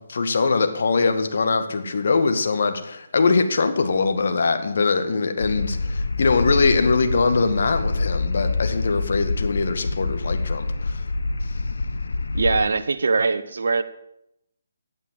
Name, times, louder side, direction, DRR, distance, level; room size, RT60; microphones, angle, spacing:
voice 1, 0.0-11.0, left 4 dB, 60° left, 8 dB, 1.9 m, -22 dB
sound 1, 5.4-12.7, left 3 dB, 75° left, 1.2 m, -26 dB
voice 2, 12.3-13.8, right 4 dB, 65° right, 9 dB, 0.9 m, -21 dB
15.0 x 9.0 x 7.6 m, 0.82 s
figure-of-eight pair, 145°, 0 cm